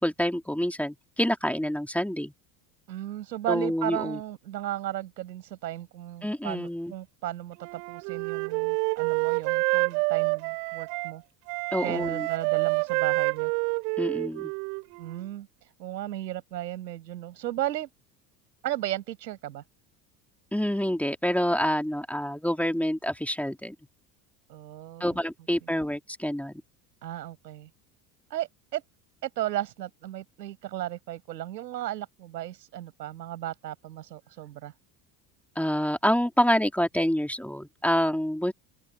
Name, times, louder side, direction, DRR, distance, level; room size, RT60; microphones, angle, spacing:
voice 1, 0.0-2.3 3.5-4.2 6.2-6.9 11.7-12.3 14.0-14.5 20.5-23.7 25.0-26.6 35.5-38.5, equal, 5° left, 3.1 m, -27 dB
voice 2, 2.9-11.2 11.8-13.5 15.0-15.5 15.8-17.9 18.6-19.6 24.5-25.2 25.6-25.7 27.0-27.7 28.3-28.8 29.2-34.7, right 13 dB, 85° right, 5.8 m, -35 dB
Wind instrument woodwind instrument, 7.6-11.1 11.5-15.2, right 36 dB, 70° right, 4.0 m, -28 dB
open air
hypercardioid pair, 75°, 49 cm